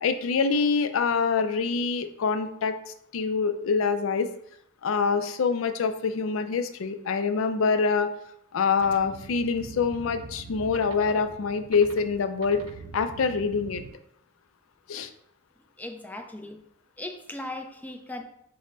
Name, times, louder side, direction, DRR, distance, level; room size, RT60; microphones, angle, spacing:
voice 1, 0.0-2.8 3.1-4.3 4.8-8.1 8.5-12.7 12.9-13.8 14.9-15.1, left 5 dB, 75° left, 9 dB, 0.4 m, -25 dB
sound 1, 8.8-13.9, right 3 dB, 75° right, 0.4 m, -44 dB
voice 2, 15.8-16.6 17.0-18.2, left 1 dB, 10° left, 4 dB, 0.3 m, -38 dB
5.2 x 2.1 x 3.8 m, 0.73 s
head